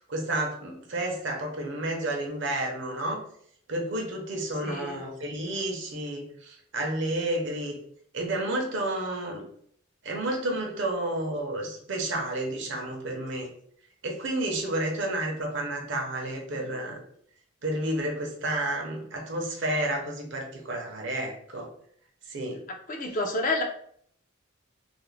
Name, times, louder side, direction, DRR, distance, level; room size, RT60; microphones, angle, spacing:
voice 1, 0.1-3.2 3.7-7.8 8.1-9.4 10.0-13.5 14.0-17.0 17.6-21.7 22.3-22.6, right 1 dB, 60° right, 1 dB, 0.6 m, -31 dB
voice 2, 4.6-5.0 22.9-23.6, left 2 dB, 40° left, 2 dB, 0.4 m, -29 dB
2.4 x 2.0 x 3.1 m, 0.64 s
head